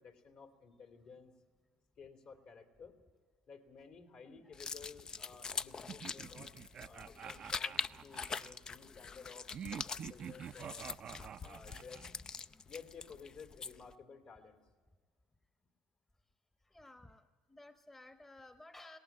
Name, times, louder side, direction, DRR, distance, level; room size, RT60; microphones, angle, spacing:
voice 1, 0.0-1.3 2.0-2.9 3.5-6.5 6.8-10.9 11.4-12.1 12.7-14.6, left 5 dB, 60° left, 5 dB, 3.3 m, -54 dB
voice 2, 4.2-4.6 4.9-5.0 7.1-7.2 9.0-9.3 11.2-12.7 16.6-19.0, left 2 dB, 15° left, 8 dB, 1.2 m, -58 dB
sound 1, 4.5-13.9, left 5 dB, 35° left, 0.5 m, -44 dB
sound 2, 5.9-8.6 9.5-12.1, right 8 dB, 45° right, 0.5 m, -47 dB
18.5 x 18.0 x 8.7 m, 1.5 s
supercardioid pair, 75°, 2 cm